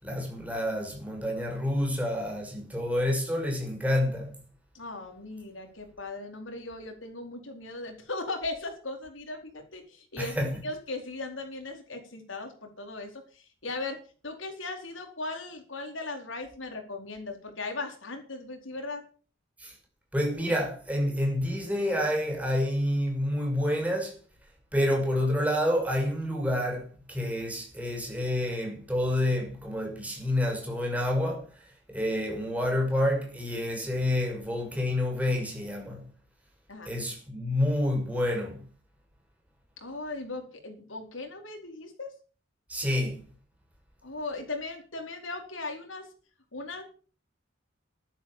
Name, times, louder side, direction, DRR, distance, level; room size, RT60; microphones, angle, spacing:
voice 1, 0.0-4.3 10.2-10.5 19.6-19.7 20.1-24.1 24.7-31.5 31.9-36.1 36.9-38.6 42.7-43.2, left 1 dB, 10° right, 5.9 m, -28 dB
voice 2, 4.7-14.0 14.2-19.0 36.7-36.9 39.8-42.1 44.0-46.1 46.5-46.8, left 2 dB, 90° left, 4.4 m, -38 dB
12.0 x 11.0 x 7.5 m
head